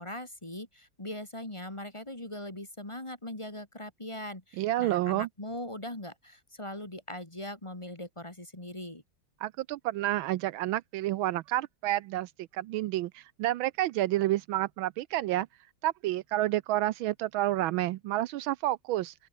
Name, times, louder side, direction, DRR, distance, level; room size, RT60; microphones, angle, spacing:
voice 1, 0.0-9.0, left 1 dB, 15° left, 2.1 m, -40 dB
voice 2, 4.6-5.3 9.4-15.5 15.8-19.1, right 15 dB, 80° right, 1.4 m, -29 dB
open air
omnidirectional pair, 2.3 m